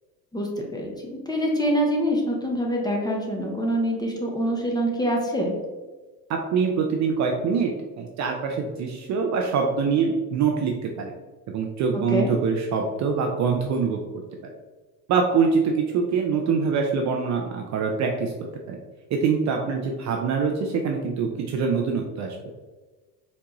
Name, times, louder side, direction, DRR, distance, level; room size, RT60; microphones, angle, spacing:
voice 1, 0.3-5.5 12.1-12.3, equal, 10° left, -1 dB, 0.6 m, -25 dB
voice 2, 6.3-7.7 8.0-11.1 11.5-14.0 15.1-18.3 18.7-18.8 19.1-22.4, right 5 dB, 40° right, 2 dB, 0.4 m, -24 dB
3.9 x 2.2 x 2.9 m, 1.3 s
supercardioid pair, 90°, 48 cm